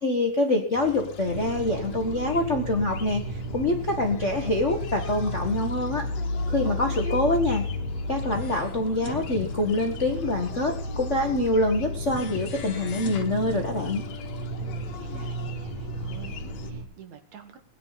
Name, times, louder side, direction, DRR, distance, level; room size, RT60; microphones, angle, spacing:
voice 1, 0.0-6.0 6.5-7.6 8.1-14.0, left 2 dB, 40° left, 2 dB, 1.0 m, -25 dB
sound 1, 0.7-16.7, left 9 dB, 65° left, 2.2 m, -40 dB
sound 2, 1.3-16.8, equal, 40° right, 3.3 m, -33 dB
voice 2, 6.6-7.3 14.6-17.6, right 5 dB, 70° right, 6 dB, 2.8 m, -45 dB
20.0 x 10.0 x 4.1 m, 0.42 s
omnidirectional pair, 3.5 m